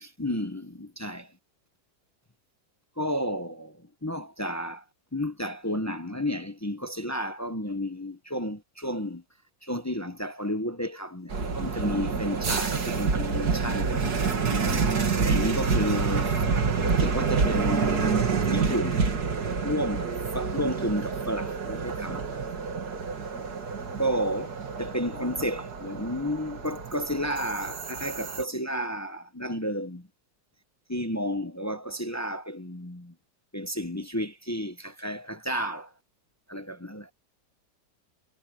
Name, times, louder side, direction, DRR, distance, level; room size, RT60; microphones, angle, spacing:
voice 1, 0.0-1.3 3.0-4.8 5.1-9.2 9.6-14.0 15.2-16.3 17.0-18.1 18.4-19.1 19.6-22.3 24.0-30.1 30.9-33.1 33.5-35.9 36.5-37.1, equal, 15° left, 0.5 m, -32 dB
sound 1, 11.3-28.4, right 5 dB, 65° right, 2.7 m, -28 dB
omnidirectional pair, 1.8 m